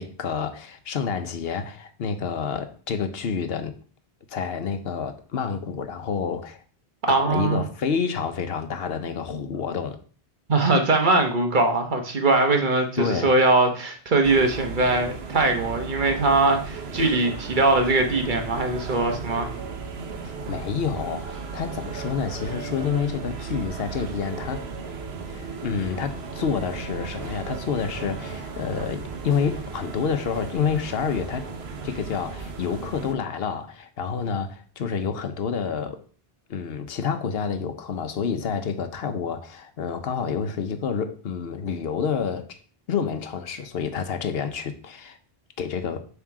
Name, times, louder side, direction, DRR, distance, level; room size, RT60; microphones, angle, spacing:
voice 1, 0.0-3.7 4.3-6.6 7.1-10.0 13.0-13.3 20.2-24.7 25.3-31.5 31.8-36.0 36.5-42.6 42.9-45.2 45.6-46.1, left 6 dB, 75° left, 1.0 m, -28 dB
voice 2, 7.0-7.6 10.5-19.5, right 2 dB, 50° right, 1.2 m, -21 dB
sound 1, 14.2-33.1, right 5 dB, 85° right, 1.1 m, -35 dB
7.3 x 3.6 x 4.7 m
omnidirectional pair, 1.0 m